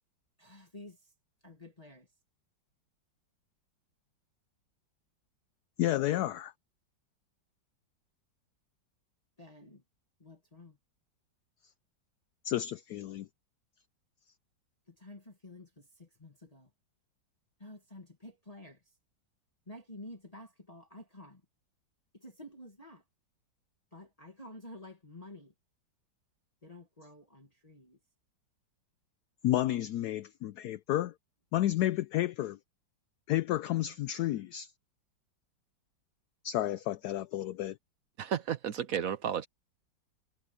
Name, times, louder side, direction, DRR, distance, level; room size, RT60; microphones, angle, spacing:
voice 1, 0.4-1.1 1.4-2.1 9.4-9.8 10.2-10.8 14.9-16.7 17.6-19.0 19.7-21.4 22.1-23.0 23.9-25.5 26.6-28.0, left 1 dB, 20° left, 1.9 m, -50 dB
voice 2, 5.8-6.5 12.4-13.3 29.4-31.1 31.5-32.6 33.3-34.7 36.4-37.8, left 13 dB, 70° left, 1.0 m, -31 dB
voice 3, 38.2-39.5, right 8 dB, 65° right, 0.9 m, -33 dB
omnidirectional pair, 2.0 m